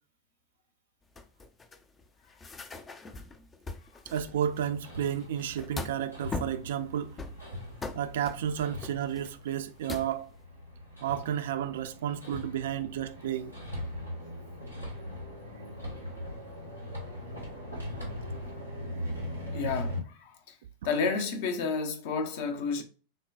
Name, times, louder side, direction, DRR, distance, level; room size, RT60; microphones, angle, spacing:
sound 1, 1.2-4.7 5.0-6.1 6.3-6.8 7.2-10.2, left 3 dB, 20° left, 0.5 m, -41 dB
voice 1, 4.1-7.1 7.9-10.3 11.0-13.5, right 10 dB, 55° right, 0.4 m, -32 dB
Hammer, 4.3-20.0, left 1 dB, 90° left, 1.5 m, -40 dB
voice 2, 19.5-20.6 20.8-22.8, left 4 dB, 50° left, 0.8 m, -31 dB
6.5 x 2.2 x 2.4 m
figure-of-eight pair, 90°, 0 cm